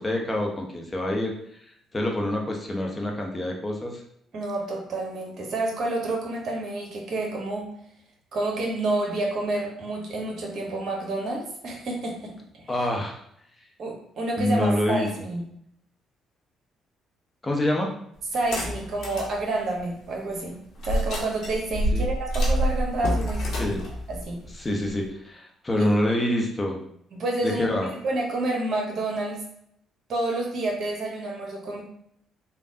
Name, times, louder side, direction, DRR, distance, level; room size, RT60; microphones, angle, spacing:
voice 1, 0.0-1.3 1.9-4.0 12.7-13.2 14.4-15.1 17.4-17.9 21.9-22.1 23.6-23.8 24.6-26.8 27.4-27.9, left 1 dB, 25° left, 1 dB, 0.8 m, -26 dB
voice 2, 4.3-7.7 8.3-12.3 13.8-15.4 18.3-20.6 20.8-23.7 24.1-24.4 25.8-25.9 27.1-27.7 28.0-29.4 30.1-31.8, right 2 dB, 55° right, 0 dB, 0.8 m, -29 dB
sound 1, 18.3-19.3 19.8-19.9 20.8-25.1, equal, 60° left, 1.0 m, -27 dB
3.3 x 2.2 x 2.7 m, 0.71 s
hypercardioid pair, 50°, 0 cm